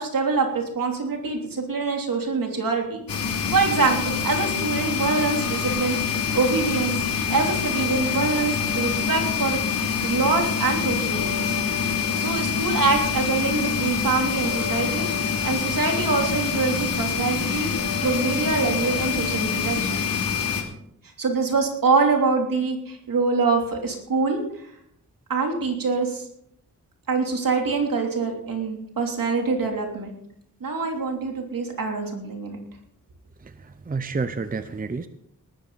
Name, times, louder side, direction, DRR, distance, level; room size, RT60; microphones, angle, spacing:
voice 1, 0.0-3.0 3.5-6.0 6.3-11.5 12.2-15.1 15.4-17.7 18.0-20.1 21.2-24.4 25.3-26.2 27.1-30.1 30.6-32.6, right 4 dB, 75° right, 2 dB, 3.3 m, -25 dB
sound 1, 3.1-20.6, left 6 dB, 80° left, 3.1 m, -25 dB
voice 2, 33.4-35.1, right 4 dB, 25° right, 10 dB, 0.7 m, -30 dB
19.0 x 13.0 x 4.1 m, 0.72 s
wide cardioid pair, 165°, 34 cm